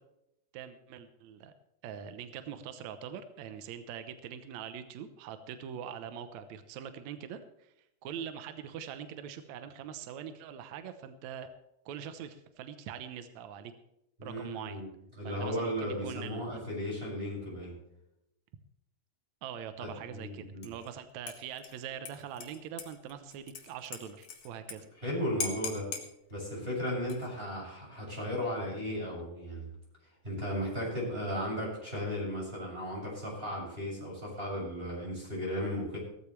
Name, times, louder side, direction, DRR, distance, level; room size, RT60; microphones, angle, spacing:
voice 1, 0.5-1.5 1.8-7.7 8.0-11.5 11.9-13.7 14.2-14.8 15.2-16.6 19.4-24.9, right 8 dB, 70° right, 10 dB, 2.1 m, -43 dB
voice 2, 14.2-14.9 15.2-17.7 19.8-20.7 25.0-25.9 26.3-29.6 30.2-36.0, equal, 15° right, -4 dB, 7.0 m, -35 dB
Dishes pots and pans / Liquid, 20.6-20.9 21.3-24.8 25.0-25.1 25.4-26.1 26.9-27.4, left 4 dB, 85° left, 3.3 m, -42 dB
17.0 x 14.0 x 3.3 m, 0.84 s
omnidirectional pair, 3.5 m